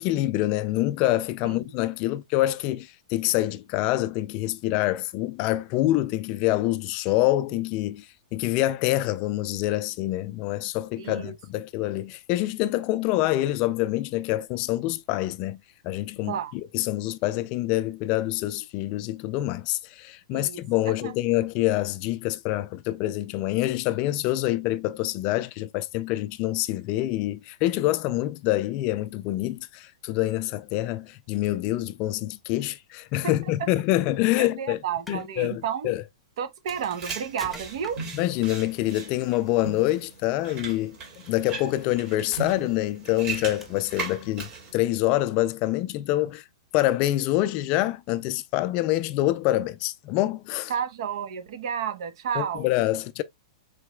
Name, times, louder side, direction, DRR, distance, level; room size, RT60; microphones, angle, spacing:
voice 1, 0.0-8.1 8.3-15.6 15.8-34.8 35.1-36.0 38.1-41.0 41.3-46.4 46.7-50.7 52.4-53.2, left 16 dB, 30° left, 0.3 m, -26 dB
voice 2, 11.0-11.3 16.3-16.5 20.3-20.6 21.0-21.1 33.2-33.3 34.4-35.9 36.4-38.0 50.7-52.7, right 8 dB, 60° right, 0.9 m, -31 dB
sound 1, 34.9-35.3 36.7-38.2 39.5-39.8 41.0-41.2 41.8-41.9 42.3-42.9 43.6-43.9, equal, ahead, 0.7 m, -45 dB
sound 2, 36.7-44.7, right 4 dB, 30° right, 2.4 m, -38 dB
4.7 x 4.1 x 2.2 m
hypercardioid pair, 155°, 3 cm